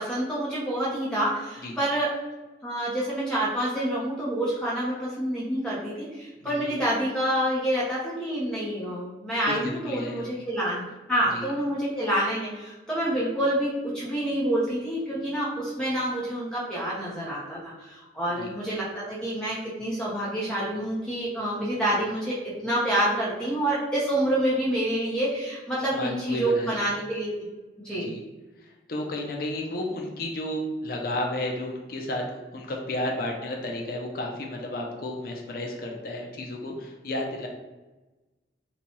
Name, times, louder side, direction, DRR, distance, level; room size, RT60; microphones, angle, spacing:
voice 1, 0.0-2.1 2.6-10.8 11.1-27.5 27.8-28.1, right 1 dB, 5° left, -8 dB, 0.7 m, -27 dB
voice 2, 6.4-6.7 9.5-10.3 11.3-11.4 18.4-18.5 25.9-26.9 28.0-28.2 28.6-37.5, left 1 dB, 50° left, 0 dB, 0.5 m, -32 dB
4.1 x 2.2 x 2.9 m, 1.1 s
head